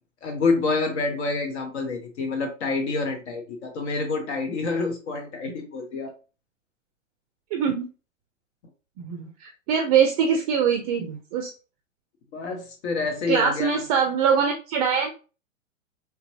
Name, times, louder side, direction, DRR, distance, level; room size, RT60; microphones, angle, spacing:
voice 1, 0.2-6.1 12.3-13.8, left 3 dB, 60° left, 4 dB, 0.9 m, -27 dB
voice 2, 7.5-7.9 9.0-11.5 13.3-15.1, right 7 dB, 30° right, 4 dB, 0.4 m, -23 dB
4.0 x 2.3 x 2.6 m, 0.34 s
hypercardioid pair, 115°, 38 cm